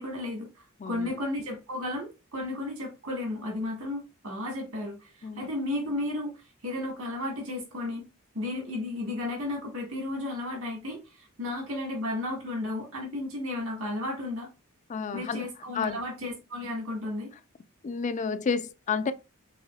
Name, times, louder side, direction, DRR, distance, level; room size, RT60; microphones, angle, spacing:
voice 1, 0.0-8.0 8.3-14.5 15.1-17.3, left 2 dB, 80° right, 1.8 m, -34 dB
voice 2, 0.8-1.1 5.2-5.5 14.9-15.5 15.8-16.0 17.8-19.1, left 5 dB, 35° left, 0.4 m, -30 dB
5.6 x 3.5 x 2.3 m
head